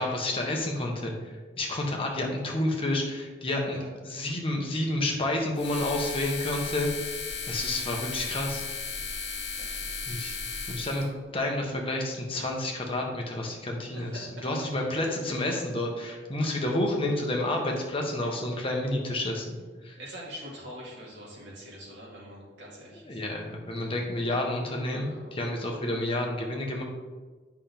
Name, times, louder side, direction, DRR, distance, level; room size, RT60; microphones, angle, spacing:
voice 1, 0.0-3.8 4.0-6.9 7.5-8.6 10.1-10.4 10.7-11.1 11.3-19.6 19.8-20.0 23.1-26.8, left 1 dB, 30° left, 0 dB, 1.2 m, -30 dB
sound 1, 5.6-11.1, left 5 dB, 65° left, 1.1 m, -35 dB
voice 2, 9.6-10.0 10.9-11.1 13.9-14.5 20.0-23.2 25.0-25.3, equal, 70° right, -5 dB, 2.4 m, -44 dB
8.2 x 5.8 x 3.5 m, 1.4 s
head